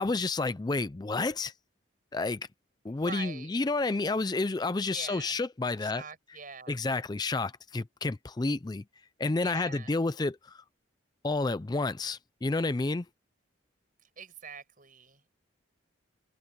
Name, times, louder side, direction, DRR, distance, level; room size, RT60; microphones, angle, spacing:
voice 1, 0.0-1.5 2.1-2.5 2.8-6.0 6.7-8.8 9.2-10.6 11.2-13.1, left 3 dB, 20° left, 0.4 m, -30 dB
voice 2, 2.9-3.5 4.8-5.4 5.8-6.8 9.4-9.9 14.0-15.3, right 5 dB, 40° right, 7.8 m, -45 dB
open air
head